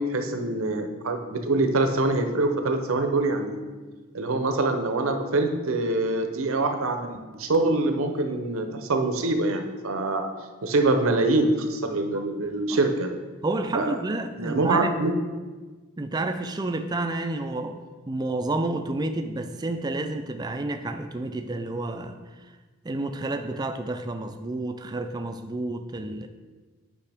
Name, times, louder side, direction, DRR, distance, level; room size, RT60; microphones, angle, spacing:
voice 1, 0.0-3.6 4.1-10.3 10.6-13.1 13.7-13.9 14.4-15.1, right 2 dB, 70° right, 5 dB, 0.7 m, -24 dB
voice 2, 12.1-12.8 13.4-14.9 16.0-17.8 18.1-22.2 22.8-26.3, right 2 dB, 20° right, 8 dB, 0.4 m, -30 dB
8.3 x 5.5 x 3.5 m, 1.3 s
head